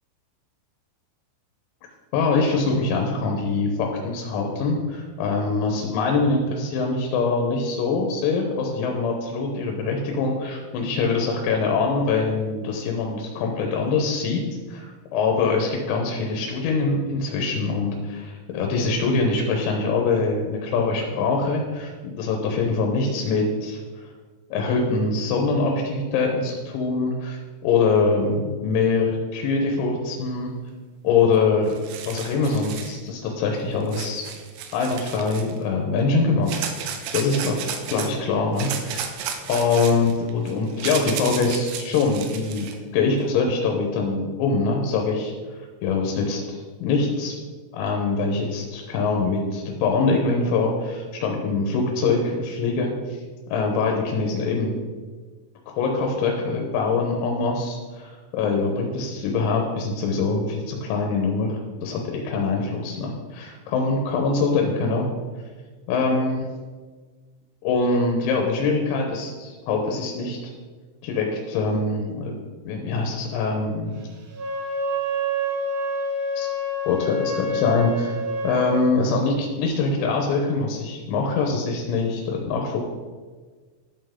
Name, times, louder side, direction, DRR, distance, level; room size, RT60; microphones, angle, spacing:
voice 1, 2.1-14.4 14.7-23.8 24.5-30.5 31.0-31.8 32.1-34.3 34.7-36.6 36.9-37.6 37.9-39.1 39.5-42.7 42.9-45.3 45.8-47.4 47.7-53.2 53.5-54.8 55.8-65.1 65.9-66.5 67.6-70.4 71.0-72.3 72.7-74.0 76.4-76.5 76.9-78.2 78.4-82.8, left 4 dB, 85° left, 1 dB, 3.7 m, -23 dB
sound 1, 31.4-31.5 31.7-33.0 33.9-35.6 36.5-38.1 38.6-42.8, right 8 dB, 85° right, 3.2 m, -33 dB
Wind instrument woodwind instrument, 74.3-78.8, equal, 70° right, 2.9 m, -27 dB
12.0 x 5.5 x 3.7 m, 1.4 s
omnidirectional pair, 6.0 m